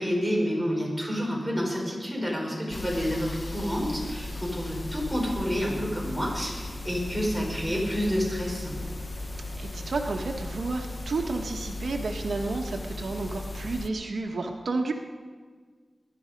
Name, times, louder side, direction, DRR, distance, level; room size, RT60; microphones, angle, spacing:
voice 1, 0.0-8.7, equal, 5° left, -3 dB, 5.3 m, -29 dB
sound 1, 2.7-13.9, left 2 dB, 35° left, 0.8 m, -36 dB
voice 2, 9.6-14.9, right 3 dB, 75° right, 2 dB, 1.2 m, -31 dB
21.5 x 11.0 x 5.2 m, 1.5 s
wide cardioid pair, 115°, 0 cm